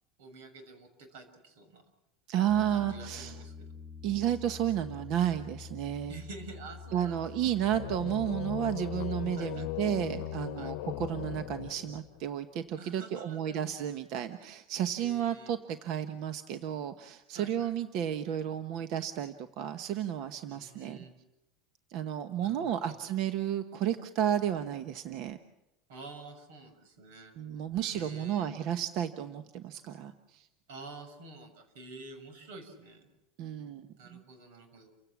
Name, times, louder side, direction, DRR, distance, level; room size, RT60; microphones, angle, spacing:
voice 1, 0.2-1.8 2.7-3.5 6.1-7.2 9.4-9.6 10.6-10.7 12.8-13.9 15.0-15.5 17.3-17.7 20.5-21.1 22.4-23.0 25.9-27.3 27.9-28.5 30.7-33.1 34.0-34.9, right 3 dB, 90° right, 7 dB, 6.7 m, -49 dB
voice 2, 2.3-3.4 4.0-6.2 6.9-21.0 21.9-25.4 27.4-30.5 33.4-34.2, right 10 dB, 50° right, 9 dB, 1.1 m, -32 dB
Piano, 2.5-10.5, left 5 dB, 15° right, 1.8 m, -48 dB
sound 1, 7.5-12.3, left 16 dB, 70° left, 0.9 m, -38 dB
29.5 x 16.5 x 7.4 m, 0.91 s
cardioid pair, 160°, 0 cm